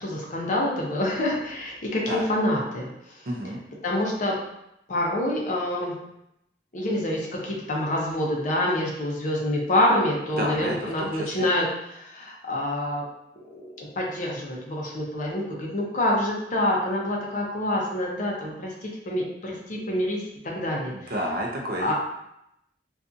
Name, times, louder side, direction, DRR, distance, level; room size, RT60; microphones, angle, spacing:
voice 1, 0.0-2.9 3.8-4.4 4.9-6.0 6.7-13.0 13.5-21.1 21.8-21.9, left 1 dB, 45° left, -2 dB, 0.6 m, -27 dB
voice 2, 3.3-3.6 10.4-11.5 20.9-21.9, equal, 55° right, -1 dB, 0.5 m, -30 dB
2.6 x 2.3 x 2.5 m, 0.82 s
head